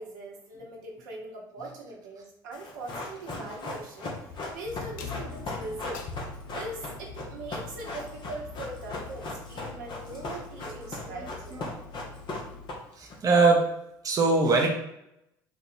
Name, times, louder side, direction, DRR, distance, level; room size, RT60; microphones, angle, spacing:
voice 1, 0.0-6.1 6.5-11.8, right 2 dB, 75° right, -1 dB, 1.2 m, -41 dB
Run, 2.5-13.1 13.4-13.5, left 2 dB, 50° left, 1.3 m, -38 dB
sound 1, 4.6-12.7, left 5 dB, 75° left, 0.6 m, -44 dB
voice 2, 13.0-13.6 14.0-14.7, right 3 dB, 35° right, -1 dB, 1.0 m, -23 dB
4.6 x 2.7 x 4.3 m, 0.84 s
hypercardioid pair, 65°, 10 cm